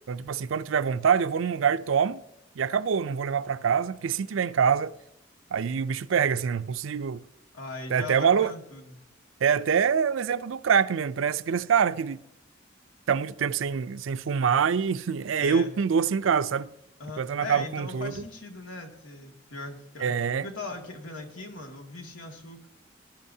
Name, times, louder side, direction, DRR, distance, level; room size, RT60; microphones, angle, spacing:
voice 1, 0.1-2.2 2.6-5.0 5.5-7.2 7.9-8.5 9.4-12.2 13.1-16.7 17.2-18.2 20.0-20.5, right 7 dB, 80° right, 0.4 m, -25 dB
voice 2, 7.5-9.0 15.4-15.7 17.0-20.1 20.4-22.7, left 3 dB, 85° left, 2.2 m, -39 dB
19.5 x 11.5 x 2.8 m
head